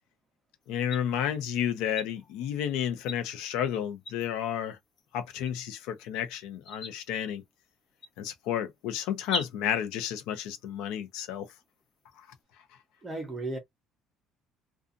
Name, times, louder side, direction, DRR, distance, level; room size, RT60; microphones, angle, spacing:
sound 1, 0.6-12.4, left 3 dB, 45° left, 1.0 m, -45 dB
voice 1, 0.7-4.8 5.1-7.4 8.2-11.5, left 9 dB, 80° left, 0.7 m, -31 dB
voice 2, 13.0-13.6, right 2 dB, 15° right, 0.7 m, -34 dB
2.5 x 2.4 x 2.5 m
cardioid pair, 160°, 0 cm